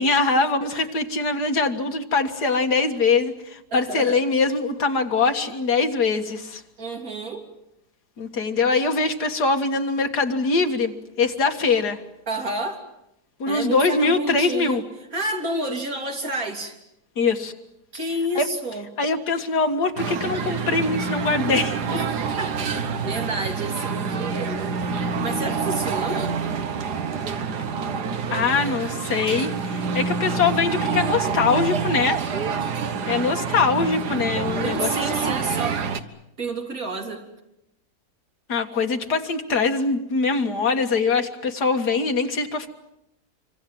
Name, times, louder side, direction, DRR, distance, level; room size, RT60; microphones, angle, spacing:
voice 1, 0.0-6.6 8.2-12.0 13.4-14.8 17.2-17.5 18.4-18.5 19.0-21.8 28.3-32.2 33.1-35.3 38.5-42.7, left 4 dB, 80° left, 5 dB, 2.3 m, -23 dB
voice 2, 3.7-4.2 6.8-7.4 12.3-12.8 13.5-14.8 15.1-16.7 17.9-18.9 21.9-26.4 34.6-35.8 36.4-37.2, right 1 dB, 60° right, 2 dB, 3.8 m, -30 dB
sound 1, 20.0-36.0, right 5 dB, 80° right, 1.9 m, -27 dB
26.5 x 24.5 x 7.7 m, 0.83 s
omnidirectional pair, 1.7 m